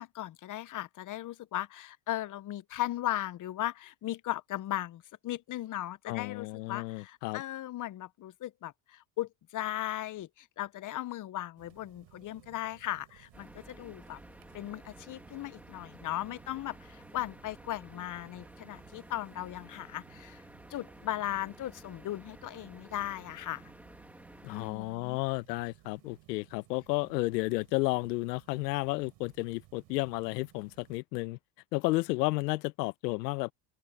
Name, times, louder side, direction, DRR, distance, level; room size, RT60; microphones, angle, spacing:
voice 1, 0.0-14.2 14.5-20.4 20.7-23.6 24.5-25.2, left 14 dB, 40° left, 0.9 m, -37 dB
voice 2, 6.1-7.4 24.4-31.4 31.7-33.5, left 22 dB, 85° left, 0.8 m, -32 dB
sound 1, 11.6-31.0, right 19 dB, 65° right, 4.2 m, -60 dB
sound 2, 13.3-24.7, right 1 dB, 5° right, 2.1 m, -53 dB
open air
supercardioid pair, 95°, 48 cm